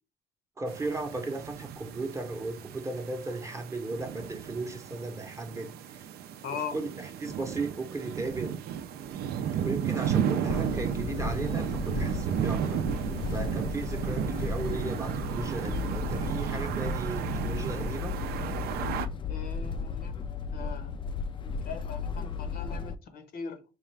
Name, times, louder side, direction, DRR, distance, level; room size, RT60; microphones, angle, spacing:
voice 1, 0.6-6.1 6.5-8.5 9.6-18.2, right 2 dB, 15° right, 0.7 m, -36 dB
sound 1, 0.7-19.1, right 9 dB, 70° right, 0.4 m, -33 dB
voice 2, 6.4-6.8 19.3-20.2 20.5-21.0 21.4-23.6, left 6 dB, 60° left, 0.7 m, -40 dB
sound 2, 10.5-22.9, left 4 dB, 30° left, 0.3 m, -35 dB
4.3 x 2.4 x 3.2 m
cardioid pair, 110°, 17 cm